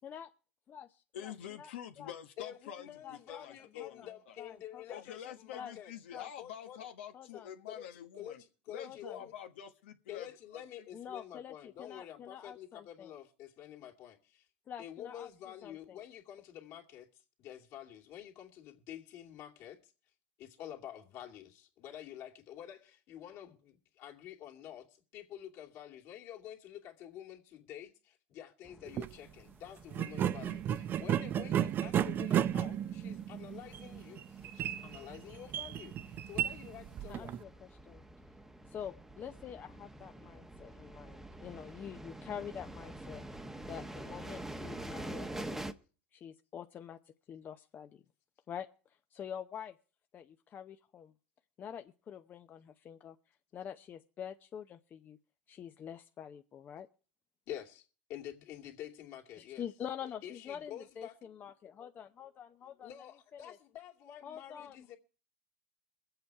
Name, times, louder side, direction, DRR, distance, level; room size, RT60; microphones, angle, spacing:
voice 1, 1.1-4.4 4.9-8.4 8.7-10.6, left 9 dB, 80° left, 1.2 m, -47 dB
voice 2, 2.4-5.9 6.4-6.8 7.7-7.9 8.2-9.3 10.1-14.5 14.8-17.1 17.4-19.9 20.4-37.4 57.5-59.7 60.2-61.1 62.8-65.0, left 11 dB, 50° left, 2.5 m, -48 dB
voice 3, 3.0-3.5 3.8-5.0 5.5-5.7 6.1-6.3 7.1-7.5 8.8-9.2 10.9-13.1 14.7-15.3 15.6-16.0 30.2-30.3 37.1-38.0 38.7-43.2 43.7-45.7 46.1-47.0 47.3-48.0 48.5-48.7 49.1-49.7 50.1-51.1 51.6-53.2 53.5-55.2 55.5-56.9 59.4-62.9 63.3-63.6 64.2-64.9, left 8 dB, 30° left, 0.7 m, -46 dB
sound 1, 28.6-45.7, right 1 dB, 5° right, 0.9 m, -48 dB
sound 2, 28.9-29.1 29.9-37.4, right 10 dB, 35° right, 0.6 m, -34 dB
22.5 x 8.0 x 4.7 m
supercardioid pair, 120°, 6 cm